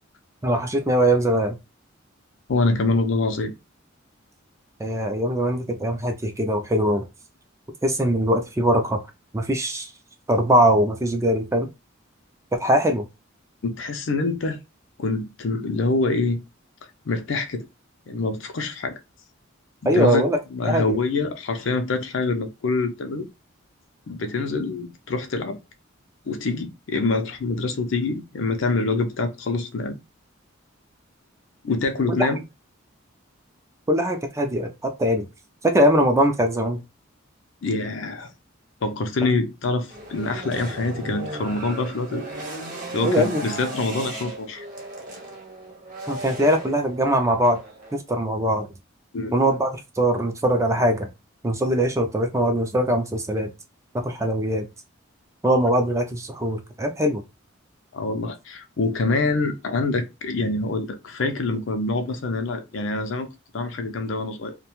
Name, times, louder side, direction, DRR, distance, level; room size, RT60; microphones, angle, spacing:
voice 1, 0.4-1.6 4.8-7.0 7.8-9.0 9.3-9.9 10.3-11.7 12.5-13.1 19.8-20.4 20.6-21.0 33.9-35.3 35.6-36.8 43.0-43.4 46.1-47.6 47.9-48.7 49.3-51.1 51.4-53.5 53.9-54.7 55.4-57.2, equal, 15° right, 0.4 m, -21 dB
voice 2, 2.5-3.5 13.6-14.6 15.0-16.4 17.1-17.6 18.1-19.0 19.8-20.2 20.5-23.3 24.1-25.6 26.3-30.0 31.6-32.4 37.6-38.3 38.8-42.2 42.9-44.7 49.1-49.3 57.9-63.3 63.5-64.6, left 3 dB, 65° left, 0.5 m, -25 dB
sound 1, 39.9-48.0, right 2 dB, 40° right, 0.8 m, -36 dB
2.4 x 2.2 x 2.9 m
head